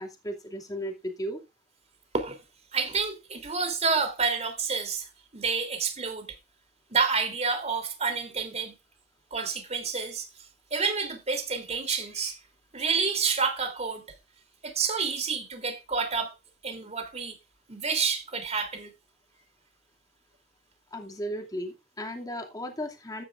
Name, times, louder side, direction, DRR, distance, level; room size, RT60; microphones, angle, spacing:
voice 1, 0.0-1.4 20.9-23.2, equal, 20° left, 2.5 m, -35 dB
voice 2, 2.7-6.4 6.9-8.7 9.3-12.4 12.7-14.0 14.6-16.3 16.6-17.3 17.7-18.9, right 5 dB, 35° right, 3.3 m, -29 dB
14.0 x 10.0 x 2.5 m
head